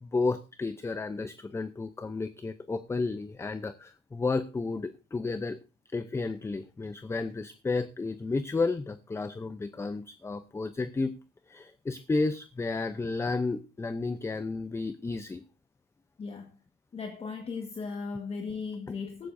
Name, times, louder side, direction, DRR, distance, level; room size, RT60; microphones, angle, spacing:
voice 1, 0.0-5.6 5.9-11.1 11.5-15.4, left 3 dB, 15° left, 0.7 m, -32 dB
voice 2, 16.2-16.6 16.9-19.3, left 4 dB, 35° left, 1.6 m, -37 dB
15.5 x 13.0 x 2.6 m
cardioid pair, 110°, 17 cm